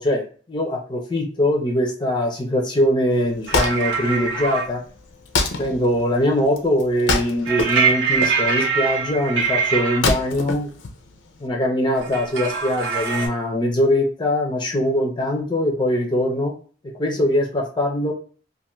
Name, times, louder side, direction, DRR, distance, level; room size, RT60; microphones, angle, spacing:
voice 1, 0.0-4.8 5.6-10.7 11.4-16.5 17.0-18.1, left 1 dB, 25° left, 1 dB, 0.5 m, -22 dB
Wood, 3.1-11.5, left 3 dB, 80° left, 0.5 m, -27 dB
sound 1, 3.5-4.7 7.4-10.0 12.0-13.3, right 5 dB, 85° right, 0.8 m, -23 dB
2.5 x 2.5 x 2.9 m, 0.41 s
head